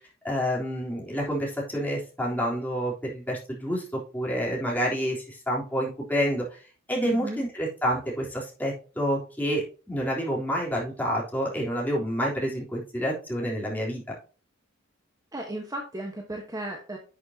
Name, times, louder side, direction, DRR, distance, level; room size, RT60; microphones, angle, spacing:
voice 1, 0.2-6.6 6.9-14.0, equal, 10° left, -4 dB, 3.5 m, -28 dB
voice 2, 7.0-7.4 15.3-17.0, right 1 dB, 20° right, 1 dB, 1.2 m, -34 dB
11.0 x 6.5 x 2.8 m, 0.36 s
head